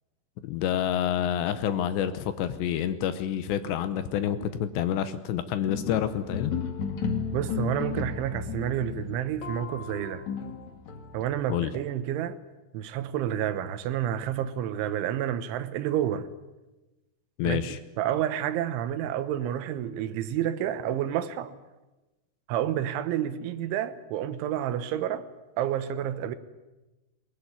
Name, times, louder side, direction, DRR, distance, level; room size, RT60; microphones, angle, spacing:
voice 1, 0.4-6.5 11.5-11.7 17.4-17.8, left 10 dB, 75° left, 2.7 m, -28 dB
sound 1, 5.7-11.2, left 6 dB, 45° left, 2.7 m, -33 dB
voice 2, 7.3-10.3 11.1-12.4 12.7-16.3 17.4-17.7 18.0-21.5 22.5-25.3 25.6-26.4, right 10 dB, 75° right, 3.3 m, -29 dB
22.0 x 20.5 x 9.7 m
omnidirectional pair, 6.0 m